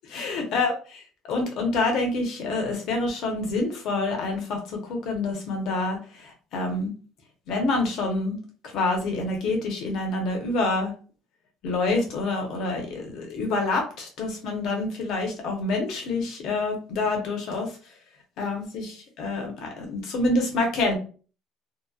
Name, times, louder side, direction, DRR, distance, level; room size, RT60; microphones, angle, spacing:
voice 1, 0.1-6.9 7.5-8.4 8.7-10.9 11.6-17.8 18.4-21.0, left 2 dB, 60° left, 2 dB, 0.9 m, -27 dB
2.8 x 2.1 x 2.3 m, 0.38 s
cardioid pair, 145°, 0 cm